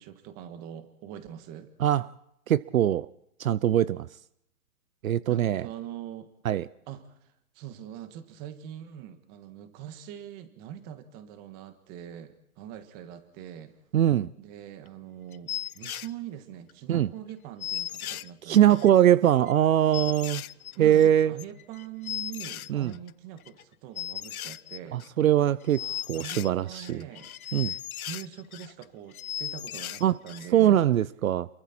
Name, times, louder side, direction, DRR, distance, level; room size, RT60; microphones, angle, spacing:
voice 1, 0.0-1.7 5.3-6.3 6.9-13.7 14.4-18.9 20.7-25.0 25.8-30.8, right 10 dB, 20° right, 1.6 m, -43 dB
voice 2, 2.5-3.1 3.4-4.1 5.0-5.7 6.4-6.7 13.9-14.3 16.9-17.1 18.4-20.4 20.8-21.3 22.7-22.9 24.9-27.0 27.5-27.7 30.0-30.2 30.5-31.5, right 11 dB, 70° right, 0.7 m, -22 dB
sound 1, 14.9-15.0 15.3-16.1 16.7-16.8 17.0-17.1 17.3-17.4 17.6-19.0 19.5-19.6 19.9-23.1 23.4-23.6 24.0-25.3 25.6-28.8 29.1-30.5 30.8-30.9, left 11 dB, 75° left, 0.7 m, -37 dB
28.5 x 23.0 x 4.4 m
hypercardioid pair, 160°, 43 cm